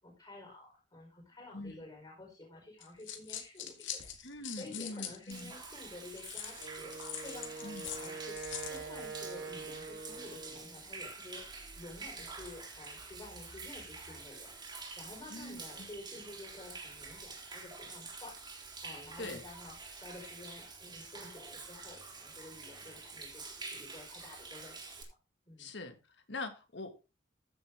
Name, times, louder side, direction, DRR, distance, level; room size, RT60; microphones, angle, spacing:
voice 1, 0.0-8.4 8.7-11.4 11.7-18.4 18.8-19.8 20.0-25.0 25.5-25.7, left 2 dB, 25° left, -2 dB, 4.5 m, -51 dB
voice 2, 1.5-1.9 4.2-5.5 7.6-7.9 15.3-15.6 19.2-19.4 25.6-26.9, left 2 dB, 70° left, 7 dB, 1.9 m, -43 dB
sound 1, 2.8-5.6 6.1-8.8, left 9 dB, 85° left, 2.0 m, -43 dB
Human voice / Rain / Stream, 5.3-25.0, right 4 dB, 25° right, 3.2 m, -47 dB
Wind instrument woodwind instrument, 6.6-10.8, right 4 dB, 85° right, 3.4 m, -45 dB
14.5 x 6.9 x 3.6 m, 0.29 s
head